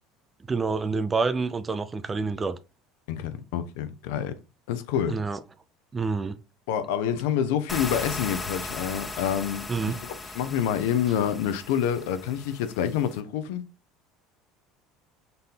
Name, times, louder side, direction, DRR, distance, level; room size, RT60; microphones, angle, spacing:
voice 1, 0.5-2.6 5.1-5.4 5.9-6.4 9.7-10.0, right 4 dB, 25° right, 0.5 m, -27 dB
voice 2, 3.1-4.4 4.7-5.2 6.7-13.6, left 9 dB, 75° left, 0.5 m, -27 dB
sound 1, 7.7-13.2, left 3 dB, 20° left, 0.7 m, -37 dB
4.0 x 2.7 x 3.7 m
hypercardioid pair, 85°, 0 cm